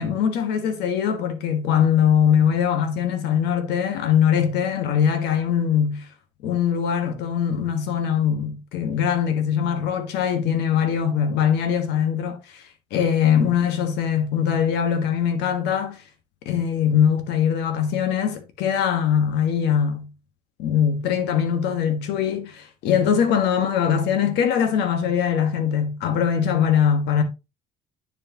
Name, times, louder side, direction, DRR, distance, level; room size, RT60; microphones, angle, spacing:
voice 1, 0.0-6.1 6.4-12.6 12.9-16.0 16.5-20.1 20.6-27.2, left 8 dB, 85° left, 1.6 m, -22 dB
9.9 x 4.9 x 3.0 m
cardioid pair, 110°, 17 cm